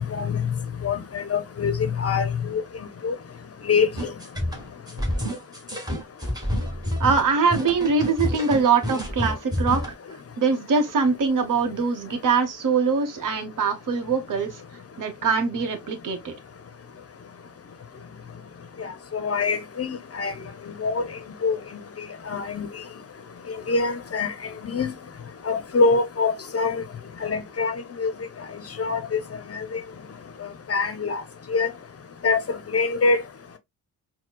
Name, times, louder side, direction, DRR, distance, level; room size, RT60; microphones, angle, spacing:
voice 1, 0.1-0.4 0.8-2.6 3.0-3.1 3.7-3.9 19.1-20.3 20.8-21.0 21.4-21.6 22.3-22.7 23.7-24.3 24.6-24.9 25.5-26.8 27.2-28.1 28.8-29.2 29.7-29.8 30.7-31.2 31.5-31.7 32.2-32.4 32.7-33.2, left 4 dB, 35° left, 0.6 m, -24 dB
sound 1, 3.9-9.9, equal, 10° right, 1.4 m, -28 dB
voice 2, 7.0-9.8 10.4-14.6 15.0-16.3, right 5 dB, 45° right, 1.0 m, -23 dB
4.3 x 2.2 x 2.2 m
supercardioid pair, 55°, 44 cm